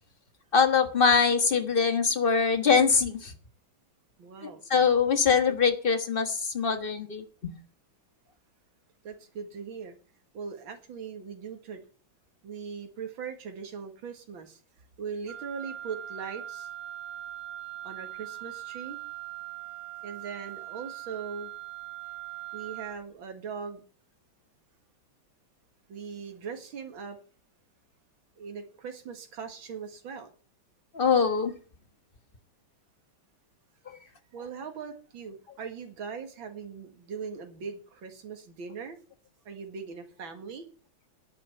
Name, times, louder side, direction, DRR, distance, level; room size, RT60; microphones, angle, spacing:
voice 1, 0.5-3.3 4.4-7.5 30.9-31.5, left 5 dB, 30° left, 8 dB, 1.3 m, -23 dB
voice 2, 4.2-4.6 9.0-10.0 10.3-11.8 12.4-14.6 15.0-16.7 17.8-19.0 20.0-21.5 22.5-23.8 25.9-27.2 28.4-30.3 34.3-39.0 39.5-40.7, right 6 dB, 75° right, 6 dB, 2.6 m, -40 dB
Wind instrument woodwind instrument, 15.3-23.0, right 14 dB, 55° right, 0.7 m, -41 dB
11.0 x 8.9 x 7.0 m, 0.40 s
omnidirectional pair, 2.2 m